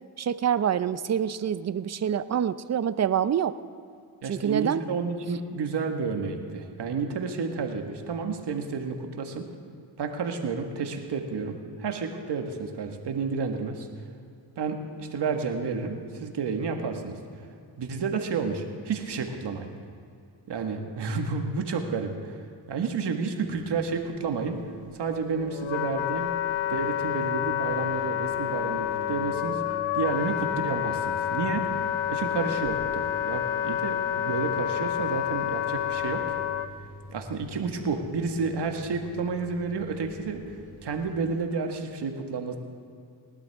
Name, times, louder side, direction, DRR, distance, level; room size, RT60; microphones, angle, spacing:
voice 1, 0.2-3.6 4.3-4.8, right 9 dB, 35° right, 15 dB, 0.6 m, -26 dB
voice 2, 4.2-9.5 10.0-13.9 14.6-17.2 17.8-19.7 20.5-24.6 24.9-26.3 26.7-29.6 29.9-31.7 32.1-36.2 37.1-42.6, right 5 dB, 60° right, 4 dB, 1.7 m, -31 dB
sound 1, 23.4-41.4, right 1 dB, 50° left, 3.2 m, -47 dB
Wind instrument woodwind instrument, 25.1-36.7, left 11 dB, 80° left, 0.7 m, -29 dB
19.0 x 12.0 x 3.6 m, 2.4 s
supercardioid pair, 60°, 47 cm